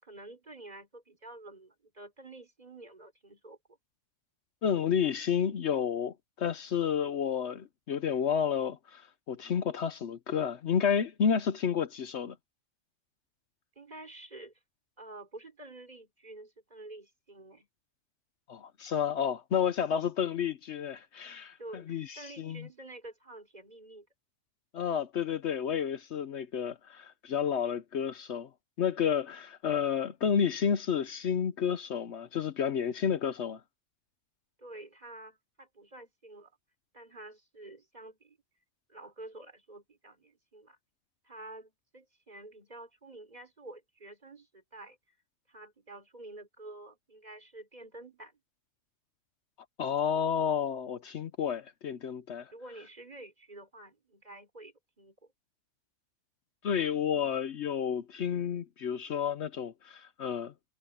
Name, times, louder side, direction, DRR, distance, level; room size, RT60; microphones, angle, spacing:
voice 1, 0.0-3.6 13.8-14.5 15.0-17.7 21.6-24.1 34.6-36.5 36.9-38.4 38.9-40.8 41.2-45.0 45.5-48.4 52.5-55.2, right 2 dB, 35° right, 4.1 m, -49 dB
voice 2, 4.6-12.4 18.5-22.7 24.7-28.5 28.8-33.6 49.8-52.5 56.6-60.5, left 7 dB, 70° left, 1.1 m, -31 dB
omnidirectional pair, 1.2 m